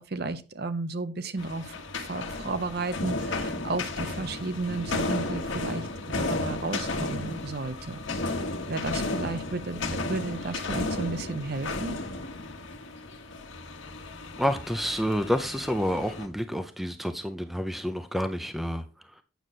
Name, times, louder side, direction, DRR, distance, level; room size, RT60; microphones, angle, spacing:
voice 1, 0.0-5.9 6.2-12.0, right 3 dB, 50° right, 0.7 m, -33 dB
sound 1, 1.4-16.3, left 2 dB, 70° left, 1.3 m, -33 dB
voice 2, 14.4-18.8, equal, ahead, 0.5 m, -29 dB
9.1 x 6.4 x 4.1 m
head